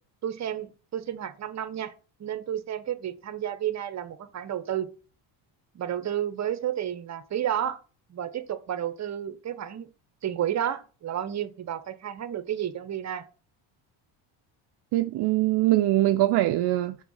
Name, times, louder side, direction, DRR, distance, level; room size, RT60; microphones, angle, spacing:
voice 1, 0.2-1.9 2.2-4.9 5.7-7.8 8.1-9.9 10.2-13.3, right 10 dB, 35° right, 0.9 m, -31 dB
voice 2, 14.9-17.0, right 15 dB, 55° right, 0.5 m, -22 dB
6.0 x 3.8 x 5.5 m
supercardioid pair, 95°, 48 cm